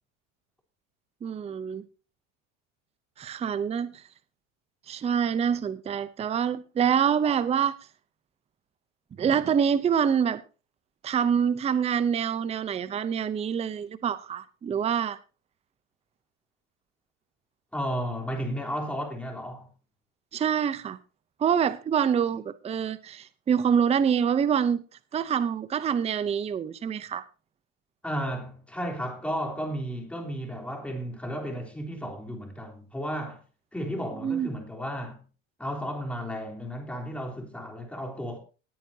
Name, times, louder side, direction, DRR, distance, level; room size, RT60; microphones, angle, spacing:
voice 1, 1.2-1.8 3.2-4.0 4.9-7.8 9.2-10.4 11.0-15.2 20.3-21.0 21.4-24.8 25.1-27.2 34.2-34.5, right 7 dB, 15° right, 0.6 m, -26 dB
voice 2, 17.7-19.7 28.0-33.4 33.7-35.2 35.6-38.4, equal, 5° left, 3.5 m, -33 dB
19.0 x 8.9 x 2.8 m
supercardioid pair, 125°, 38 cm